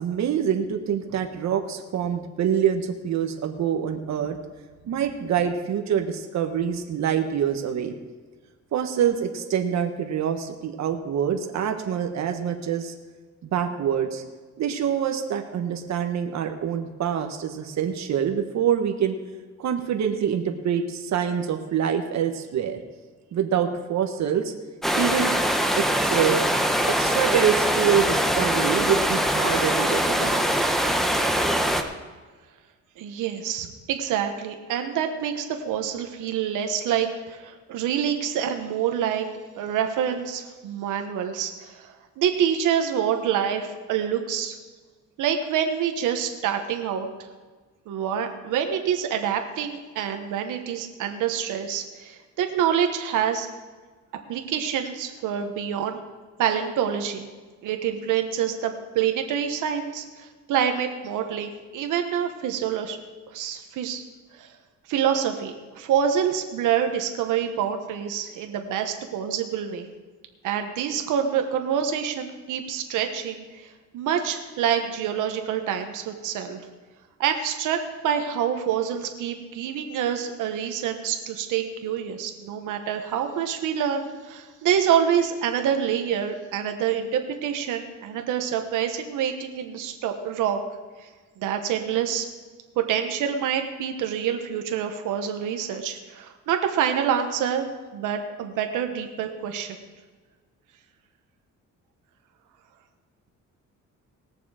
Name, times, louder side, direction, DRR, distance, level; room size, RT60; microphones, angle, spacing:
voice 1, 0.0-4.4 4.9-8.0 8.7-12.9 13.4-14.2 14.6-19.1 19.6-22.8 23.3-24.5 25.0-25.3 25.7-26.5 27.0-30.7, right 8 dB, 65° right, 5 dB, 1.3 m, -25 dB
sound 1, 24.8-31.8, equal, ahead, 1.1 m, -23 dB
voice 2, 33.0-39.3 39.6-44.6 45.2-47.1 47.9-53.5 54.3-56.0 56.4-57.3 57.6-63.0 63.3-64.0 64.4-64.5 64.9-69.9 70.4-76.6 77.2-90.6 91.4-92.3 92.8-97.7 97.9-99.8, right 8 dB, 85° right, 5 dB, 1.2 m, -26 dB
19.0 x 6.9 x 4.9 m, 1.4 s
cardioid pair, 90°, 30 cm